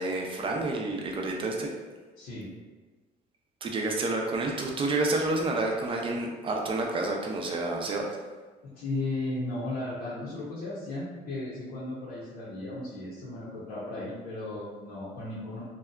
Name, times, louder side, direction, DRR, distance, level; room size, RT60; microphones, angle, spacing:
voice 1, 0.0-1.7 3.6-8.1, right 2 dB, 30° right, 0 dB, 0.4 m, -29 dB
voice 2, 2.2-2.5 8.6-15.6, left 2 dB, 70° left, -8 dB, 0.7 m, -35 dB
2.7 x 2.2 x 2.3 m, 1.4 s
cardioid pair, 110°, 17 cm